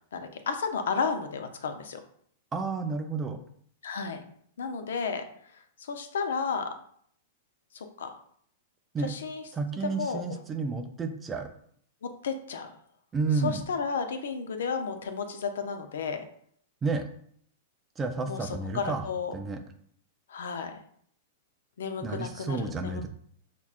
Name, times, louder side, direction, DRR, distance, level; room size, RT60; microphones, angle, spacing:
voice 1, 0.1-2.0 3.8-4.2 4.6-5.2 5.8-6.7 7.7-8.2 9.0-9.4 9.8-10.2 12.0-12.7 13.4-16.2 18.2-18.5 18.7-19.3 20.3-20.8 21.8-23.1, left 5 dB, 85° left, 7 dB, 0.5 m, -32 dB
voice 2, 2.5-3.4 8.9-9.1 9.5-11.5 13.1-13.7 16.8-17.0 18.0-19.0 19.3-19.6 22.0-23.1, right 4 dB, 15° right, 7 dB, 0.3 m, -31 dB
5.7 x 2.2 x 2.4 m, 0.63 s
supercardioid pair, 160°, 0 cm